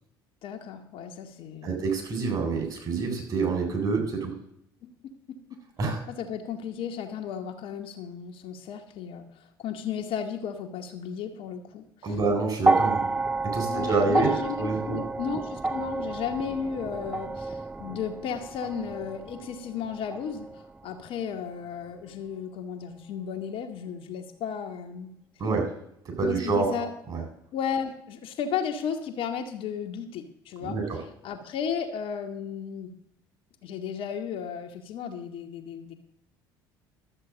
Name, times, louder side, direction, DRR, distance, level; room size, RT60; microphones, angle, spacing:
voice 1, 0.4-1.8 4.8-5.4 6.1-12.2 13.7-20.5 20.8-25.1 26.2-26.9 27.5-30.8 31.2-32.9 33.6-35.9, left 7 dB, 50° left, 4 dB, 1.2 m, -34 dB
voice 2, 1.6-4.3 5.8-6.0 12.0-13.2 13.4-14.3 14.6-15.0 25.4-25.7 26.0-26.8 27.1-27.2 30.6-31.0, right 4 dB, 35° right, 2 dB, 4.0 m, -27 dB
sound 1, 12.6-20.9 22.0-22.1, right 3 dB, 10° right, 0.5 m, -30 dB
12.0 x 7.4 x 5.0 m, 0.74 s
figure-of-eight pair, 60°, 12 cm